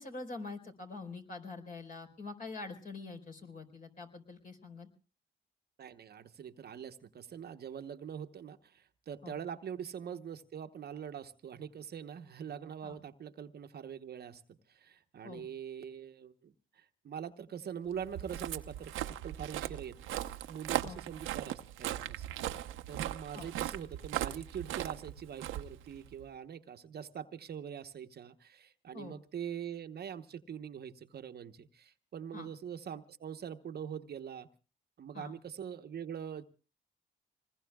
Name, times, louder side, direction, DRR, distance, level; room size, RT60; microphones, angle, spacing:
voice 1, 0.0-4.9 9.2-9.4 12.8-13.0 15.2-15.5 20.8-21.0 23.3-23.5 28.9-29.2 32.3-32.5 35.1-35.3, left 3 dB, 45° left, 4 dB, 4.6 m, -45 dB
voice 2, 5.8-22.5 22.9-34.5 35.0-36.4, right 8 dB, 55° right, 8 dB, 1.0 m, -44 dB
Walk footsteps, 18.0-26.3, right 13 dB, 90° right, 0.8 m, -39 dB
27.0 x 20.0 x 2.3 m, 0.35 s
cardioid pair, 90°, 20 cm